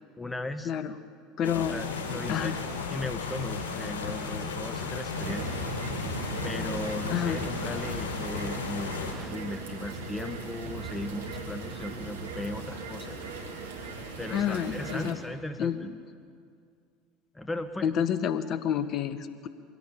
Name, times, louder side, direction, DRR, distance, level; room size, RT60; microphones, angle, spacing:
voice 1, 0.2-0.7 1.7-2.6 2.9-5.6 6.4-13.2 14.2-15.9 17.3-18.0, left 2 dB, 10° left, 9 dB, 1.2 m, -37 dB
sound 1, 1.4-9.1, left 5 dB, 75° left, 3.7 m, -35 dB
voice 2, 1.4-1.8 2.3-2.6 7.1-7.4 14.3-15.2 15.6-16.0 17.8-19.5, left 8 dB, 45° left, 13 dB, 1.2 m, -29 dB
sound 2, 5.1-15.1, right 2 dB, 80° right, 2.3 m, -38 dB
23.0 x 17.0 x 7.0 m, 2.2 s
hypercardioid pair, 75°, 0 cm